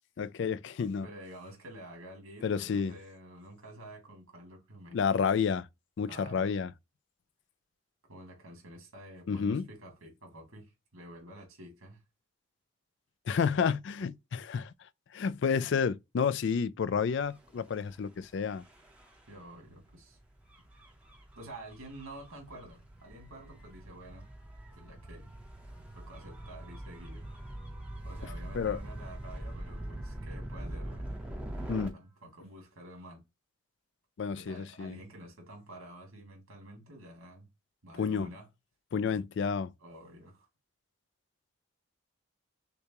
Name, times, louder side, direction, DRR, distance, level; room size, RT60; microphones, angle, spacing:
voice 1, 0.2-1.1 2.4-2.9 4.9-5.7 6.0-6.7 9.3-9.7 13.3-14.7 15.1-18.6 28.5-28.8 31.7-32.0 34.2-35.0 38.0-38.3 38.9-39.7, left 6 dB, 55° left, 0.3 m, -30 dB
voice 2, 1.0-5.0 6.1-6.5 8.1-12.0 14.0-14.1 19.3-20.2 20.7-20.8 21.4-24.3 24.8-25.3 25.9-27.3 28.0-31.1 31.9-33.2 34.3-37.5 37.8-38.5 39.8-40.5, right 1 dB, 80° right, 2.3 m, -49 dB
Gull seagull / Waves surf / Siren, 17.2-31.9, right 1 dB, 5° right, 0.9 m, -44 dB
6.5 x 2.3 x 2.9 m
head